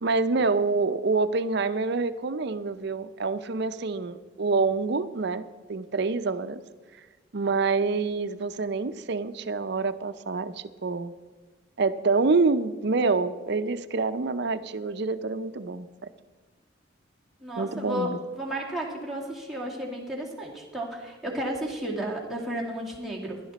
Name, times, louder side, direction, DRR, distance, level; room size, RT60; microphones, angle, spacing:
voice 1, 0.0-5.4 5.7-6.6 7.3-11.1 11.8-15.9 17.6-18.2, right 4 dB, 60° right, 12 dB, 0.6 m, -26 dB
voice 2, 17.4-23.4, right 1 dB, ahead, -4 dB, 2.2 m, -33 dB
16.0 x 11.0 x 4.1 m, 1.3 s
head